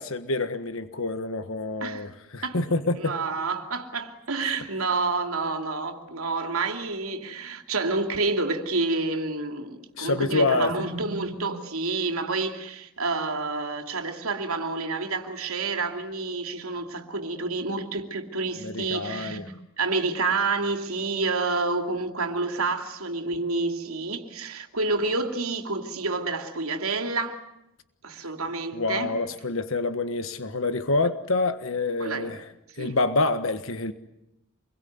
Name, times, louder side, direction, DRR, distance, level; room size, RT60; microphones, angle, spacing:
voice 1, 0.0-3.2 10.0-10.7 18.6-19.4 28.7-32.4 32.8-33.9, left 3 dB, 65° left, 1.5 m, -27 dB
voice 2, 2.9-27.4 28.0-29.1 32.0-32.3 32.8-33.0, right 3 dB, 85° right, 2.9 m, -29 dB
27.5 x 22.5 x 9.6 m
head